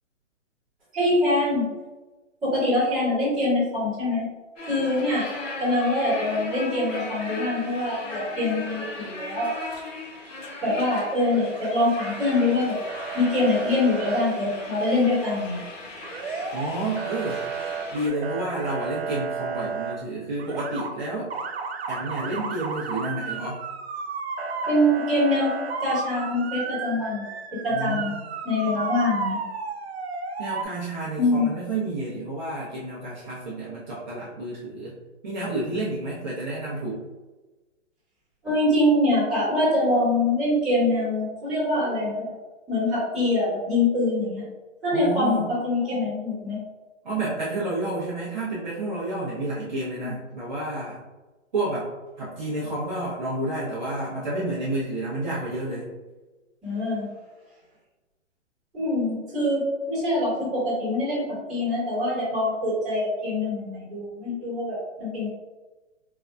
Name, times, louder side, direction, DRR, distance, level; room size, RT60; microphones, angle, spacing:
voice 1, 0.9-1.6 2.4-4.2 4.6-5.3 5.6-9.5 10.6-12.8 13.1-15.6 24.7-25.5 25.8-27.2 27.6-28.1 28.4-29.4 31.2-31.5 38.4-42.3 42.7-44.4 44.8-46.6 50.0-50.1 56.6-57.1 58.7-65.3, left 1 dB, ahead, -17 dB, 1.4 m, -24 dB
sound 1, 4.6-18.1, left 2 dB, 85° left, 1.5 m, -37 dB
Motor vehicle (road) / Siren, 10.7-11.7 12.0-12.5 12.9-14.2 16.0-16.7 17.0-19.9 20.4-20.9 21.3-30.6, right 5 dB, 55° right, 0.5 m, -33 dB
voice 2, 16.5-17.4 17.9-21.3 21.9-23.6 27.7-28.1 30.4-34.9 35.2-37.0 44.9-45.5 47.0-51.0 51.5-55.9, right 2 dB, 35° right, -8 dB, 0.8 m, -30 dB
4.5 x 2.7 x 2.2 m, 1.2 s
hypercardioid pair, 175°, 38 cm